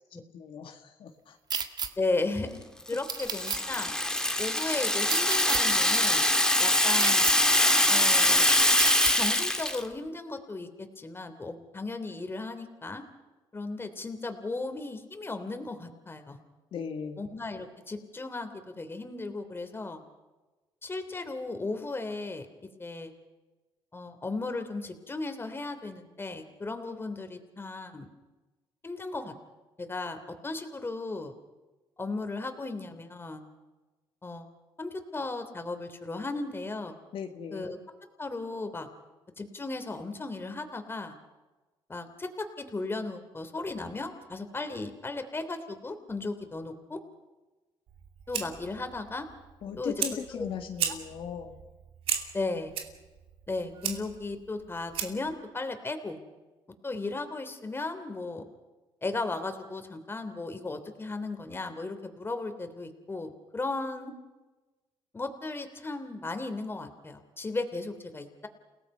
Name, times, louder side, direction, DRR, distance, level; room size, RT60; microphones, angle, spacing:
voice 1, 0.3-1.4 16.7-17.2 37.1-37.7 49.6-51.6, left 7 dB, 70° left, 4 dB, 1.9 m, -38 dB
sound 1, 1.5-1.9 3.1-3.6 5.1-5.6 7.0-7.3 8.8-9.1, right 6 dB, 50° right, 1.9 m, -30 dB
voice 2, 2.0-3.9 4.4-6.2 6.6-7.2 7.9-8.5 9.1-13.0 13.5-16.4 17.2-20.0 20.8-23.1 23.9-28.1 28.8-29.3 29.8-31.3 32.0-33.4 34.2-34.5 34.8-37.0 37.5-37.8 38.2-38.9 39.4-41.2 41.9-47.0 48.3-49.3 49.8-50.5 52.3-52.7 53.5-56.2 56.8-58.5 59.0-64.1 65.1-68.5, left 3 dB, 25° left, 7 dB, 3.1 m, -36 dB
Rattle (instrument), 2.9-9.8, left 1 dB, 5° left, 2.1 m, -23 dB
Fire, 47.9-55.4, right 8 dB, 80° right, 2.6 m, -37 dB
30.0 x 18.0 x 5.6 m, 1.2 s
cardioid pair, 95°, 10 cm